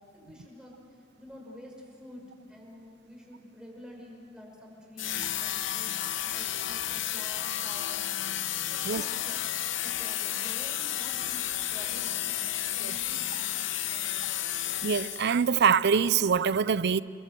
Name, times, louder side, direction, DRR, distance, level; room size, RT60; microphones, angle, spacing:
voice 1, 0.1-0.8 1.2-8.3 8.7-9.4 9.8-11.4 11.7-14.4, left 1 dB, 5° right, 5.7 m, -49 dB
sound 1, 5.0-15.5, left 12 dB, 70° left, 0.9 m, -32 dB
voice 2, 14.8-17.0, right 6 dB, 60° right, 0.5 m, -24 dB
30.0 x 22.0 x 7.7 m
head